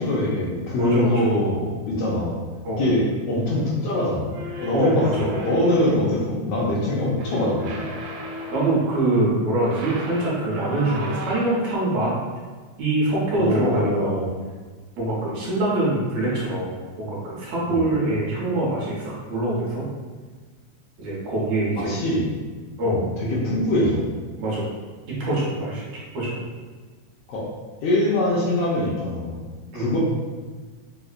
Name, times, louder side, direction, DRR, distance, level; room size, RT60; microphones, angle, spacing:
voice 1, 0.0-2.4 2.8-7.8 13.3-14.3 17.7-17.8 21.7-22.3 22.8-24.0 27.3-27.4 27.8-29.4 29.7-30.0, left 1 dB, 90° left, -7 dB, 1.4 m, -23 dB
voice 2, 0.7-1.4 2.6-2.9 4.7-5.4 8.5-12.1 12.8-14.1 15.0-16.7 17.0-19.9 21.0-22.0 22.8-23.1 24.4-24.7 25.1-25.8 26.1-26.4 29.7-29.9, right 2 dB, 70° right, -7 dB, 1.9 m, -24 dB
sound 1, 4.3-6.2 7.1-8.9 9.5-11.8, equal, 85° right, 2.0 m, -35 dB
5.0 x 2.1 x 2.4 m, 1.4 s
omnidirectional pair, 3.4 m